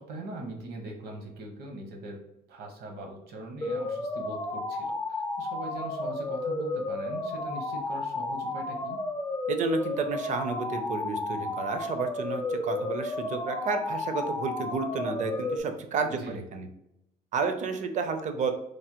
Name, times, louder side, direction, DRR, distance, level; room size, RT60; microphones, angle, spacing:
voice 1, 0.0-2.2 2.5-9.0 16.1-16.4, right 2 dB, 70° right, 3 dB, 0.8 m, -41 dB
sound 1, 3.6-15.6, left 2 dB, 15° left, 0.3 m, -32 dB
voice 2, 9.5-16.7 17.3-18.5, right 4 dB, 45° right, 7 dB, 0.5 m, -31 dB
3.2 x 2.1 x 2.8 m, 0.85 s
cardioid pair, 110°, 17 cm